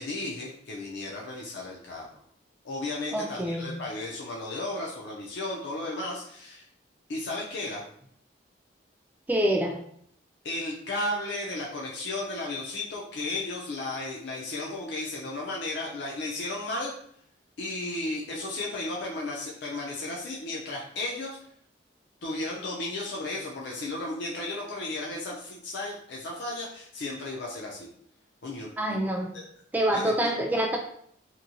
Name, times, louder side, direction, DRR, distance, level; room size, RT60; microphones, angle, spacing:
voice 1, 0.0-2.1 2.6-6.6 7.1-7.8 10.4-16.9 17.6-21.4 22.2-27.9 28.4-29.0 29.3-29.4 29.9-30.1, left 2 dB, 65° left, -2 dB, 0.5 m, -34 dB
voice 2, 3.1-3.7 9.3-9.8 28.8-29.3 29.7-30.8, right 1 dB, 10° right, 2 dB, 0.3 m, -26 dB
2.9 x 2.7 x 2.6 m, 0.66 s
head